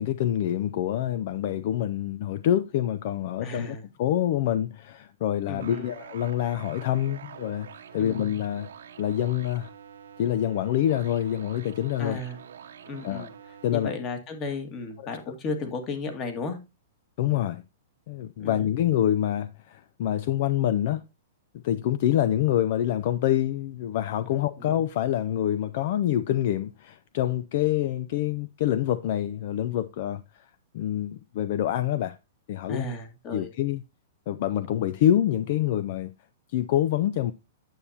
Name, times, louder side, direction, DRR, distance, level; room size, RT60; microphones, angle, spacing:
voice 1, 0.0-7.7 7.9-8.7 9.0-9.7 10.2-12.2 13.0-13.3 13.6-13.9 15.0-15.1 17.2-17.6 18.1-21.0 21.6-30.5 30.7-32.2 32.5-32.9 33.3-33.8 34.3-36.1 36.5-37.3, left 11 dB, 55° left, 0.5 m, -26 dB
voice 2, 3.4-3.8 5.5-5.9 8.0-8.3 12.0-12.4 12.9-13.3 13.7-16.6 18.4-18.7 32.7-33.5, left 3 dB, 30° left, 1.8 m, -34 dB
sound 1, 5.6-13.9, right 8 dB, 85° right, 1.1 m, -46 dB
9.2 x 7.0 x 2.7 m
hypercardioid pair, 145°, 0 cm